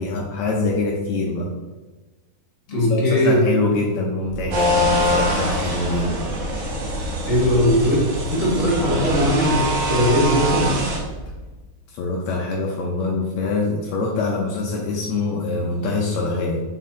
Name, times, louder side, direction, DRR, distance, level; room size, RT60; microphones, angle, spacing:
voice 1, 0.0-1.5 2.9-6.2 11.9-16.6, left 3 dB, 90° left, -1 dB, 1.5 m, -24 dB
voice 2, 2.7-3.4 7.2-8.0 8.3-10.8, equal, 30° left, -5 dB, 1.7 m, -19 dB
Vehicle, 4.3-11.6, right 4 dB, 40° right, 1.1 m, -34 dB
sound 1, 4.5-11.0, equal, 75° right, 1.1 m, -24 dB
4.9 x 4.6 x 4.2 m, 1.2 s
omnidirectional pair, 4.1 m